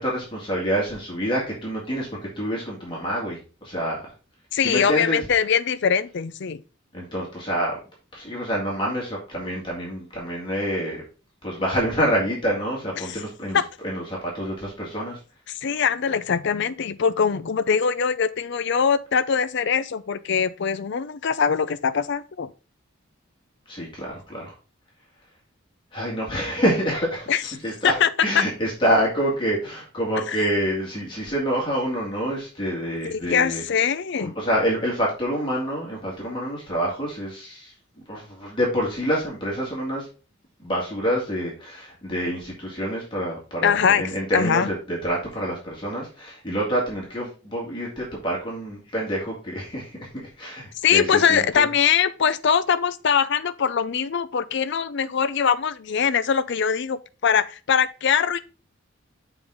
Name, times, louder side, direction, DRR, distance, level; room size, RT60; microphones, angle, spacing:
voice 1, 0.0-2.1 2.4-4.0 4.6-5.3 6.9-7.8 8.1-11.0 11.4-15.2 23.7-24.5 25.9-33.6 34.2-37.7 38.1-40.1 40.6-51.7, equal, 25° left, 2.0 m, -27 dB
voice 2, 4.5-6.6 13.0-13.1 13.5-13.6 15.5-22.5 27.3-27.4 27.8-28.1 30.3-30.4 33.1-34.4 43.6-44.0 44.3-44.7 50.8-58.4, left 7 dB, 60° left, 0.5 m, -22 dB
7.1 x 4.7 x 3.7 m
head